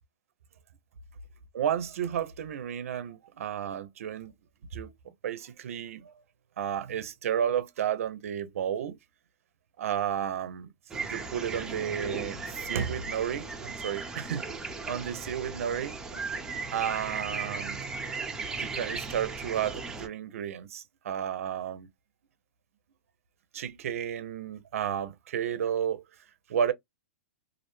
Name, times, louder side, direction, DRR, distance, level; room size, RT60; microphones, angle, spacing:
voice 1, 1.5-4.3 4.7-4.9 5.2-6.1 6.6-9.0 9.8-10.7 11.0-16.2 16.7-17.8 18.5-21.9 23.5-26.0 26.5-26.7, right 9 dB, 80° right, 0.4 m, -32 dB
sound 1, 10.9-20.1, right 4 dB, 10° right, 0.5 m, -37 dB
2.4 x 2.0 x 3.0 m
hypercardioid pair, 145°, 7 cm